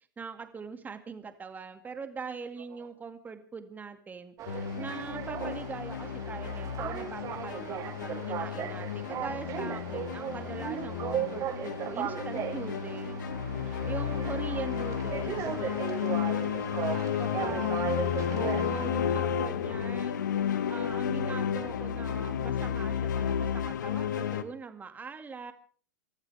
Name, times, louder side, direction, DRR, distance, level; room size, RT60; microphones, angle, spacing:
voice 1, 0.2-13.2 13.6-16.5 17.2-17.8 18.3-20.2 20.7-25.5, right 5 dB, 15° right, 8 dB, 2.1 m, -41 dB
voice 2, 2.6-2.9 13.6-14.0 16.7-18.0 19.9-20.9, right 12 dB, 60° right, 3 dB, 4.8 m, -53 dB
sound 1, 4.4-18.9, right 9 dB, 35° right, 2.2 m, -37 dB
sound 2, 4.5-24.4, left 8 dB, 70° left, 1.4 m, -32 dB
28.5 x 14.0 x 3.4 m, 0.43 s
hypercardioid pair, 100°, 10 cm